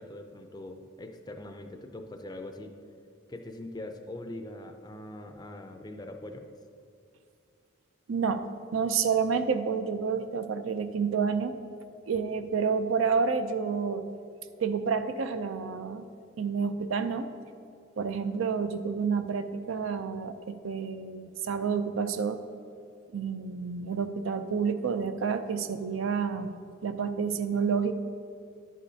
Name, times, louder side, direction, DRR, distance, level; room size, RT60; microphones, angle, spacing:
voice 1, 0.0-2.7 3.3-6.5, left 1 dB, 20° left, 6 dB, 0.4 m, -42 dB
voice 2, 8.1-8.4 8.7-11.5 12.1-14.0 14.6-16.1 16.4-17.3 18.0-22.4 23.1-26.5 26.8-28.0, right 5 dB, 80° right, 9 dB, 0.4 m, -29 dB
10.5 x 8.3 x 2.8 m, 2.5 s
head